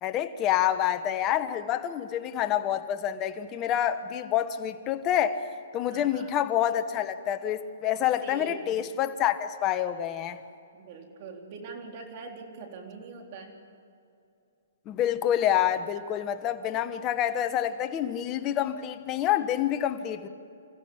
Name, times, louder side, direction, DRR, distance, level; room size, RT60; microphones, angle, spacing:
voice 1, 0.0-5.4 5.7-10.4 14.9-20.3, left 11 dB, 25° left, 9 dB, 1.2 m, -27 dB
voice 2, 5.9-6.3 8.2-8.7 10.7-13.6, right 4 dB, 40° right, 3 dB, 3.7 m, -43 dB
28.0 x 15.0 x 8.6 m, 2.5 s
hypercardioid pair, 150°, 0 cm